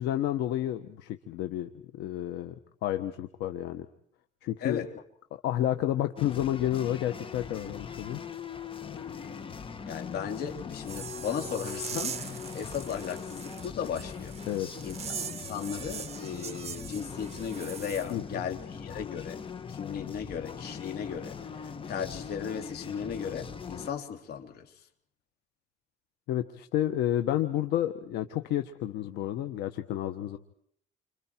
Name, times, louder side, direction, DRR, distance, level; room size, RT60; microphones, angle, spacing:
voice 1, 0.0-3.9 4.4-4.8 5.3-8.2 14.5-14.7 18.1-18.4 26.3-30.4, left 12 dB, 85° left, 1.4 m, -30 dB
sound 1, 6.2-23.9, left 6 dB, 30° left, 1.5 m, -41 dB
voice 2, 9.9-14.3 14.8-19.4 19.7-24.6, left 7 dB, 65° left, 3.3 m, -36 dB
sound 2, 10.8-18.1, right 7 dB, 40° right, 1.7 m, -41 dB
30.0 x 26.5 x 4.6 m
cardioid pair, 110°, 17 cm